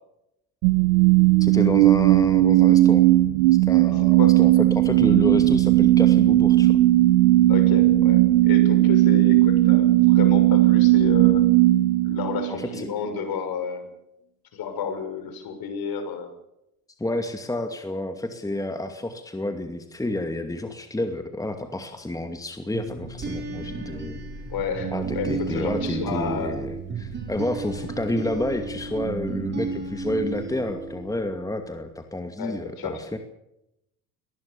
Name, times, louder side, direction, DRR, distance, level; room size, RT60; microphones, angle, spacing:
sound 1, 0.6-12.8, right 16 dB, 65° right, 1.9 m, -17 dB
voice 1, 1.4-3.1 3.5-6.8 12.5-12.9 17.0-24.2 24.9-33.2, left 1 dB, 5° left, 7 dB, 2.4 m, -30 dB
voice 2, 7.5-11.5 12.0-13.9 14.5-16.3 24.5-26.6 32.4-33.0, left 6 dB, 50° left, 8 dB, 6.5 m, -31 dB
sound 2, 22.7-31.4, right 4 dB, 20° right, 6.6 m, -33 dB
23.5 x 19.5 x 7.0 m, 0.85 s
hypercardioid pair, 80°, 47 cm